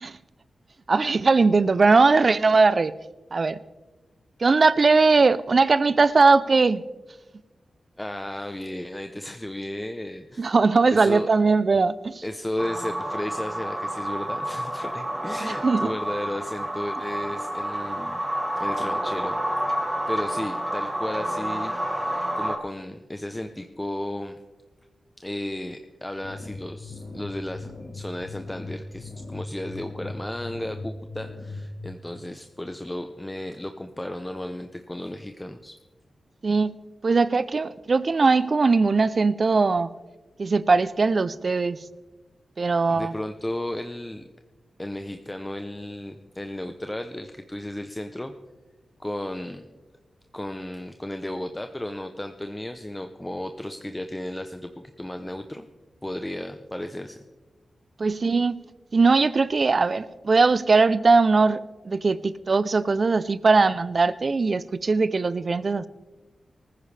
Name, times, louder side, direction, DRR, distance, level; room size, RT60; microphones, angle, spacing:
voice 1, 0.9-2.9 3.3-3.6 4.4-6.8 10.4-12.2 15.4-15.9 36.4-36.8 37.0-39.9 40.4-41.8 42.6-43.1 58.0-58.6 58.9-65.9, right 4 dB, 50° right, 17 dB, 0.5 m, -20 dB
voice 2, 8.0-10.5 10.9-11.3 12.2-18.2 18.6-19.4 19.8-21.7 22.4-24.4 25.2-35.7 42.9-44.2 44.8-48.3 49.0-49.6 50.3-55.7 56.0-57.2, left 1 dB, 15° left, 7 dB, 0.7 m, -34 dB
sound 1, 12.6-22.6, right 1 dB, 15° right, 1.9 m, -29 dB
sound 2, 26.2-31.9, left 2 dB, 80° left, 3.6 m, -38 dB
19.0 x 14.5 x 3.4 m, 1.2 s
wide cardioid pair, 80°, 0 cm